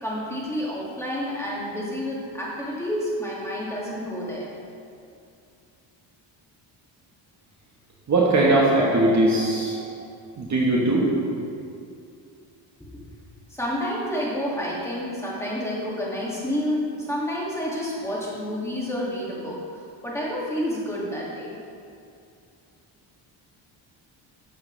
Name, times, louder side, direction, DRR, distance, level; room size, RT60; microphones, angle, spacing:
voice 1, 0.0-4.5 13.5-21.6, equal, 5° left, -6 dB, 2.3 m, -29 dB
voice 2, 8.1-9.9 10.4-11.1, right 2 dB, 35° right, -4 dB, 1.4 m, -20 dB
13.0 x 7.0 x 3.4 m, 2.4 s
cardioid pair, 120°, 47 cm